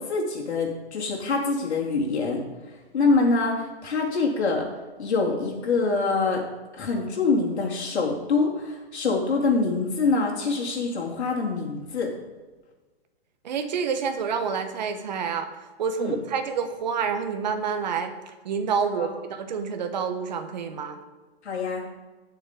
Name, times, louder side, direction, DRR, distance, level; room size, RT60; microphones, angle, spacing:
voice 1, 0.0-2.4 2.9-4.7 5.0-6.4 6.8-12.1 16.0-16.2 18.9-19.1 21.4-21.8, left 3 dB, 90° left, -2 dB, 3.6 m, -25 dB
voice 2, 13.4-15.5 15.8-21.0, right 6 dB, 40° right, 7 dB, 1.3 m, -28 dB
18.0 x 7.1 x 3.9 m, 1.3 s
hypercardioid pair, 175°, 32 cm